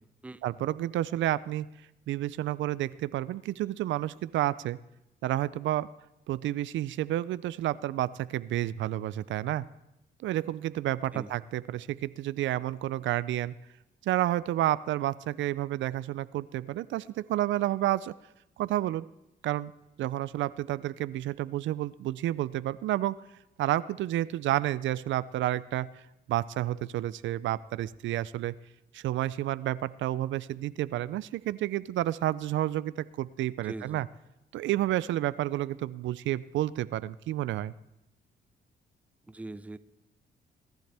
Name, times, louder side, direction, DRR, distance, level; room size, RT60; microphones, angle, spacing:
voice 1, 0.4-1.7 2.1-4.8 5.2-5.9 6.3-9.7 10.2-13.5 14.0-18.1 18.6-19.1 19.4-19.7 20.0-23.2 23.6-25.9 26.3-28.5 28.9-34.1 34.5-37.7, right 14 dB, 75° right, 17 dB, 0.4 m, -30 dB
voice 2, 33.6-34.1 39.3-39.8, right 2 dB, 5° right, 14 dB, 0.5 m, -41 dB
21.5 x 10.5 x 3.4 m, 0.91 s
cardioid pair, 90°, 20 cm